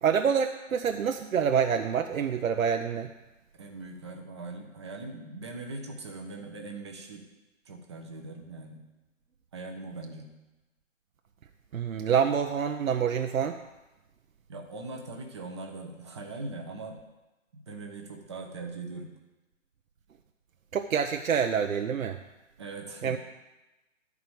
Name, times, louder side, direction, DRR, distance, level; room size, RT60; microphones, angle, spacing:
voice 1, 0.0-3.1 11.7-13.6 20.7-22.2 23.0-23.2, right 7 dB, 85° right, 5 dB, 0.8 m, -27 dB
voice 2, 3.5-7.2 7.7-8.8 9.5-10.3 14.5-17.0 17.5-19.1 22.6-23.2, right 3 dB, 20° right, 2 dB, 0.7 m, -41 dB
11.5 x 4.8 x 7.1 m, 1.1 s
hypercardioid pair, 160°, 40 cm